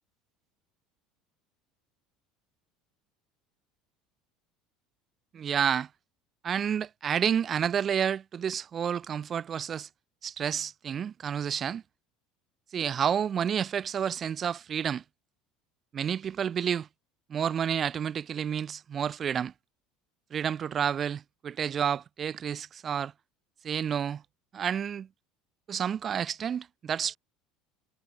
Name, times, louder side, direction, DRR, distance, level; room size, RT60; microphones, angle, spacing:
voice 1, 5.3-5.9 6.4-9.9 10.2-11.8 12.7-15.0 15.9-16.9 17.3-19.5 20.3-23.1 23.6-24.2 24.5-25.1 25.7-27.2, right 8 dB, 40° right, 4.3 m, -30 dB
supercardioid pair, 90°, 0 cm